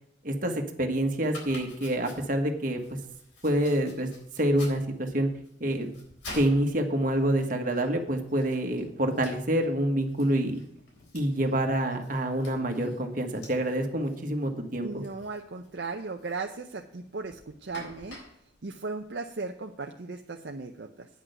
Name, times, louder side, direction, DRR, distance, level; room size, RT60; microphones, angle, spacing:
voice 1, 0.2-2.8 3.4-4.1 4.3-5.3 5.6-6.0 6.3-10.6 11.1-15.0, right 1 dB, 50° right, 4 dB, 1.4 m, -27 dB
Domestic sounds home sounds, 1.2-19.7, left 2 dB, 80° left, 3.9 m, -50 dB
voice 2, 14.8-18.2 18.6-21.1, right 3 dB, 65° right, 3 dB, 0.7 m, -37 dB
9.4 x 6.2 x 8.0 m, 0.71 s
head